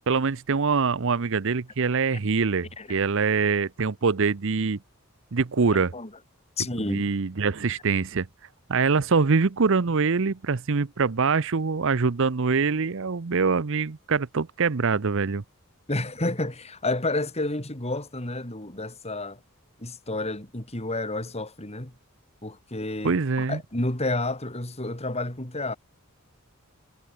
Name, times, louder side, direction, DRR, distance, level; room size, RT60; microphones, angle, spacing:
voice 1, 0.1-4.8 5.3-5.9 6.9-8.3 8.7-15.4 23.0-23.6, right 4 dB, 60° right, 0.7 m, -24 dB
voice 2, 6.6-7.1 15.9-19.4 19.8-21.9 22.4-25.8, left 2 dB, 30° left, 3.6 m, -30 dB
head